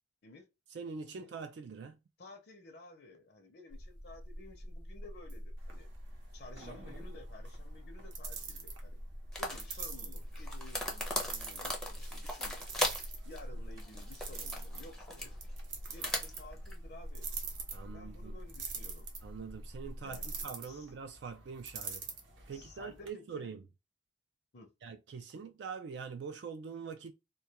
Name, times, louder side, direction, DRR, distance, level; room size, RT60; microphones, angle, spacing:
voice 1, 0.7-2.0 17.7-18.3 19.2-22.0 22.5-23.6 24.8-27.1, right 5 dB, 65° right, 0.3 m, -44 dB
voice 2, 2.2-5.9 6.3-9.0 9.4-12.8 13.2-15.4 15.9-17.3 17.8-19.1 20.0-20.3 20.6-20.9 22.5-23.6 24.5-24.7, left 2 dB, 55° left, 0.6 m, -54 dB
sound 1, 3.7-20.5, equal, 45° right, 0.8 m, -46 dB
sound 2, 5.6-23.1, right 6 dB, 80° right, 0.7 m, -47 dB
sound 3, 9.3-9.8 10.3-13.1 13.4-13.5 13.8-15.3 15.9-16.8, left 1 dB, 5° left, 0.5 m, -38 dB
2.2 x 2.2 x 2.7 m
head